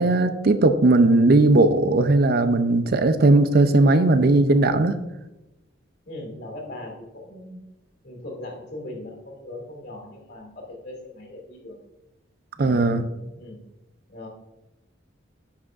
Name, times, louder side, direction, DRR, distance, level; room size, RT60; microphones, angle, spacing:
voice 1, 0.0-4.9 12.6-13.0, right 2 dB, 50° right, 10 dB, 0.5 m, -18 dB
voice 2, 6.0-7.6 8.0-11.8 12.5-13.6 14.1-14.3, left 1 dB, 60° left, 0 dB, 2.5 m, -39 dB
9.9 x 6.1 x 2.5 m, 0.98 s
head